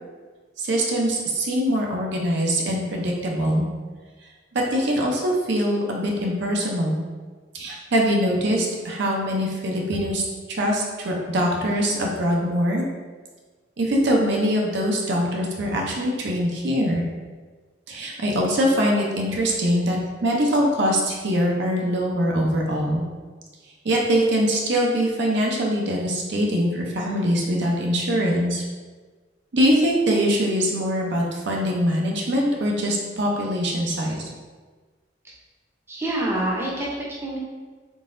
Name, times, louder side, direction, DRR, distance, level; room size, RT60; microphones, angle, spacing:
voice 1, 0.6-3.7 4.5-7.0 7.5-12.9 13.8-17.0 17.9-23.0 23.8-28.6 29.5-34.2, equal, 65° right, -1 dB, 0.6 m, -23 dB
voice 2, 35.9-37.4, right 1 dB, 15° right, -4 dB, 0.6 m, -26 dB
3.9 x 3.6 x 2.5 m, 1.4 s
head